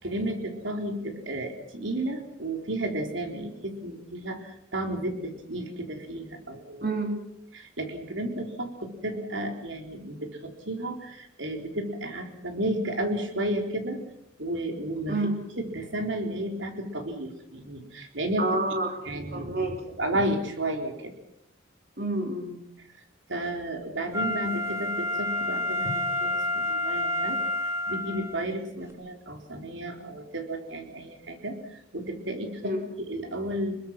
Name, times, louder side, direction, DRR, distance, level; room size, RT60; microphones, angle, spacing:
voice 1, 0.0-6.9 7.5-14.0 14.4-15.2 15.7-18.6 19.1-21.1 23.3-27.4 27.9-33.7, right 1 dB, 75° right, 3 dB, 3.9 m, -32 dB
voice 2, 18.4-19.8 22.0-22.6 28.7-28.9 32.6-32.8, right 2 dB, 50° right, 3 dB, 3.5 m, -29 dB
Wind instrument woodwind instrument, 24.1-28.4 28.9-29.0, left 1 dB, 15° right, 3.3 m, -29 dB
28.0 x 22.0 x 6.1 m, 0.78 s
head